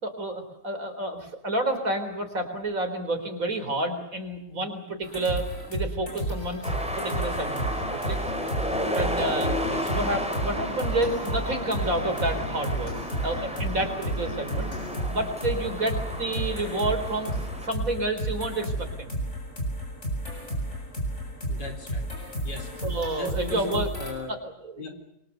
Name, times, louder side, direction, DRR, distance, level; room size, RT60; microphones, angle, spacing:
voice 1, 0.0-6.7 7.0-8.2 8.9-9.5 9.8-12.9 13.2-14.7 15.1-19.2 22.8-23.9 24.3-24.9, right 2 dB, 50° right, 6 dB, 4.6 m, -30 dB
sound 1, 5.0-24.1, right 1 dB, 40° left, 8.0 m, -32 dB
sound 2, 6.6-17.7, equal, 5° right, 4.0 m, -33 dB
voice 2, 9.7-10.1 21.5-22.1 22.4-22.7 23.2-24.3 24.8-24.9, left 3 dB, 85° left, 5 dB, 4.8 m, -37 dB
28.0 x 24.0 x 6.9 m, 0.79 s
omnidirectional pair, 1.8 m